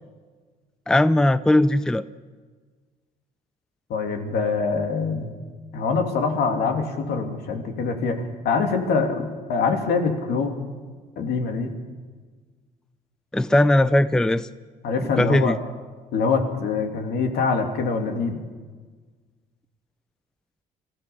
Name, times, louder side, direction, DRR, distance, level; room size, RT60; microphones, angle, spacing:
voice 1, 0.9-2.0 13.3-14.5 15.2-15.6, left 1 dB, 5° left, 15 dB, 0.5 m, -19 dB
voice 2, 3.9-5.3 5.7-8.2 8.4-10.5 11.2-11.7 14.8-15.6 16.1-18.4, left 4 dB, 70° left, 5 dB, 2.7 m, -24 dB
24.0 x 15.5 x 7.1 m, 1.5 s
cardioid pair, 110°, 17 cm